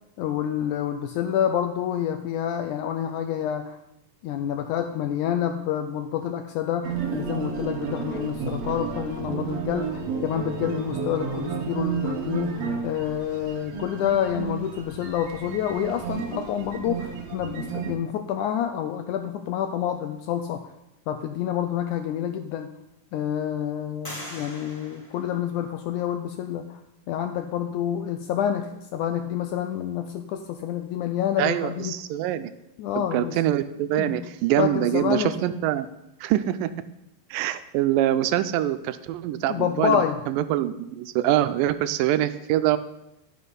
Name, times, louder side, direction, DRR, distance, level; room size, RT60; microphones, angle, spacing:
voice 1, 0.2-3.8 4.2-20.7 21.1-22.7 23.1-26.8 27.1-32.0 32.8-33.4 34.0-34.3 34.6-35.3 39.5-40.2, left 10 dB, 85° left, 7 dB, 1.8 m, -28 dB
sound 1, 6.8-18.0, right 6 dB, 60° right, 2.0 m, -32 dB
sound 2, 22.5-23.1 24.0-26.0, equal, 25° left, 0.6 m, -42 dB
voice 2, 31.4-32.5 33.1-35.9 36.2-36.7 37.3-42.8, right 12 dB, 85° right, 12 dB, 2.2 m, -24 dB
11.0 x 6.3 x 5.3 m, 0.87 s
omnidirectional pair, 4.0 m